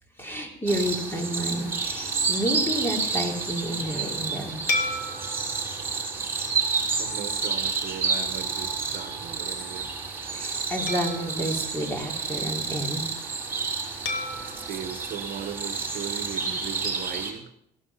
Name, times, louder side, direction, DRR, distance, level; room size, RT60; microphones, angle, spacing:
voice 1, 0.2-4.6 10.3-13.1, equal, 15° left, 2 dB, 3.4 m, -30 dB
sound 1, 0.7-17.3, right 5 dB, 10° right, 5.9 m, -30 dB
sound 2, 4.7-7.4 7.9-8.1 10.9-12.7 14.1-16.3, left 2 dB, 75° left, 2.2 m, -35 dB
voice 2, 6.9-9.9 14.3-17.5, right 9 dB, 60° right, 9 dB, 1.2 m, -38 dB
16.0 x 12.5 x 5.7 m, 0.72 s
cardioid pair, 110°, 17 cm